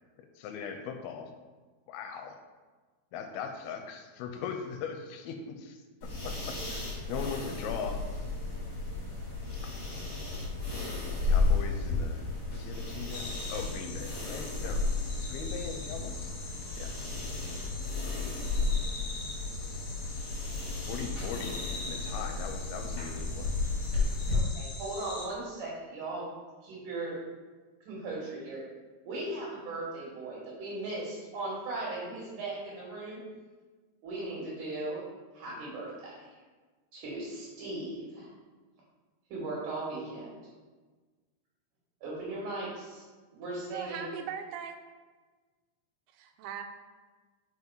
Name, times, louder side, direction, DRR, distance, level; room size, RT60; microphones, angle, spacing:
voice 1, 0.4-1.3 1.9-2.4 3.1-5.8 6.2-8.0 9.6-9.8 11.2-12.2 12.5-14.8 15.2-16.3 16.8-16.9 20.8-23.5, left 6 dB, 85° left, 5 dB, 2.4 m, -40 dB
sound 1, 6.0-24.4, left 3 dB, 40° left, 2.0 m, -33 dB
sound 2, 13.1-25.3, left 3 dB, 65° left, 1.8 m, -44 dB
voice 2, 24.3-26.3 26.6-27.2 27.9-28.6 29.0-33.2 34.0-35.0 35.3-36.3 36.9-38.3 39.3-40.3 42.0-43.0 43.3-44.0, right 2 dB, 60° right, -6 dB, 2.9 m, -38 dB
voice 3, 43.7-44.8 46.1-46.6, right 8 dB, 85° right, 6 dB, 2.6 m, -39 dB
5.9 x 5.3 x 4.6 m, 1.4 s
omnidirectional pair, 4.5 m